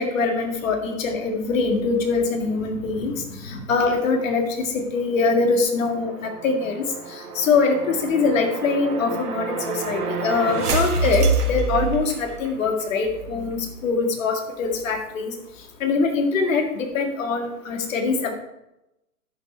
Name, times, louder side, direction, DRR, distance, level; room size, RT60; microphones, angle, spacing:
voice 1, 0.0-6.8 7.4-15.3 15.8-18.4, left 4 dB, 60° left, 4 dB, 2.0 m, -23 dB
sound 1, 5.8-12.6, right 4 dB, 80° right, 1.6 m, -27 dB
10.5 x 6.5 x 4.5 m, 0.91 s
hypercardioid pair, 125°, 45 cm